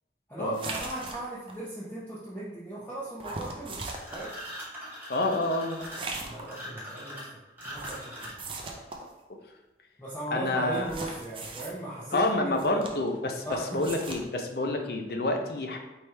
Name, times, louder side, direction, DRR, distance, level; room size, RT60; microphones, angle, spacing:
voice 1, 0.3-4.3 6.2-7.4 7.6-8.4 10.0-12.8 13.4-13.8, right 1 dB, 10° left, -9 dB, 0.7 m, -37 dB
sound 1, 0.5-1.6 3.2-4.4 5.8-6.5 7.7-9.1 10.7-11.7 12.5-13.2 13.5-14.2, right 3 dB, 30° right, 0.5 m, -39 dB
sound 2, 4.0-8.6, equal, 10° right, 1.0 m, -42 dB
voice 2, 5.1-5.8 10.3-10.9 12.1-15.8, left 2 dB, 55° left, 4 dB, 0.6 m, -28 dB
4.4 x 3.4 x 3.2 m, 1.0 s
head